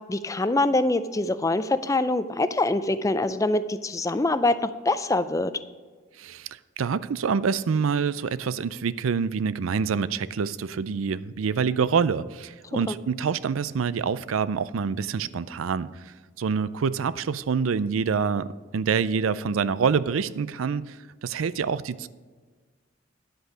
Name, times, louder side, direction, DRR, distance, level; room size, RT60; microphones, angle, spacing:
voice 1, 0.1-5.5 12.9-13.0, left 2 dB, 15° left, 13 dB, 0.4 m, -24 dB
voice 2, 6.2-22.1, right 6 dB, 90° right, 16 dB, 0.4 m, -26 dB
10.0 x 8.0 x 5.0 m, 1.5 s
head